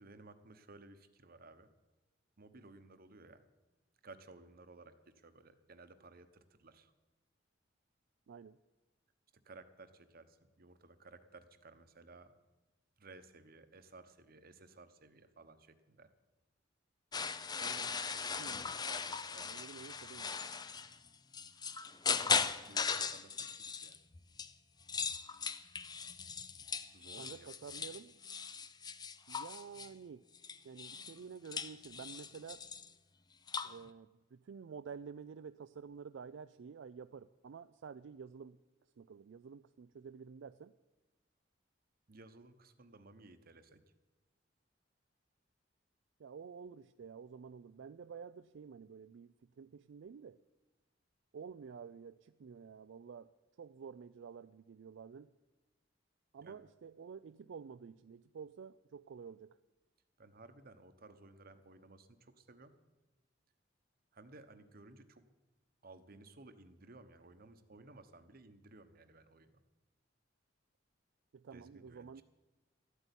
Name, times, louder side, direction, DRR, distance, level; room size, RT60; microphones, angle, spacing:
voice 1, 0.0-1.7 2.4-3.4 4.0-6.9 9.3-12.4 13.0-16.1 17.6-18.6 18.9-19.9 22.1-24.0 26.9-27.8 42.1-43.8 56.4-56.6 60.2-62.7 64.1-65.2 65.8-69.5 71.5-72.2, right 3 dB, 50° right, 10 dB, 1.0 m, -57 dB
voice 2, 8.3-8.6 18.4-18.7 19.4-20.3 27.2-28.2 29.3-30.2 30.6-32.6 33.6-38.6 39.0-40.7 46.2-50.4 51.3-53.3 53.6-55.3 56.3-59.6 71.3-72.2, right 6 dB, 65° right, 12 dB, 0.4 m, -50 dB
sound 1, 17.1-24.5 24.8-29.9 30.3-31.2 31.4-32.9 33.5-33.8, left 5 dB, 20° left, 0.5 m, -38 dB
13.5 x 8.2 x 9.9 m, 1.1 s
head